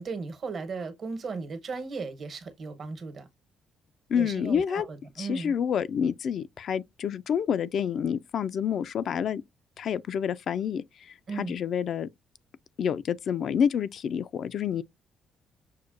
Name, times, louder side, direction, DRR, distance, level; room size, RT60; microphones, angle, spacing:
voice 1, 0.0-3.3 4.1-5.5 11.3-11.6, right 4 dB, 55° right, 1.0 m, -36 dB
voice 2, 4.1-4.9 5.2-9.4 9.8-12.1 12.8-14.8, left 8 dB, 65° left, 0.3 m, -28 dB
6.4 x 2.2 x 2.5 m
cardioid pair, 90°, 0 cm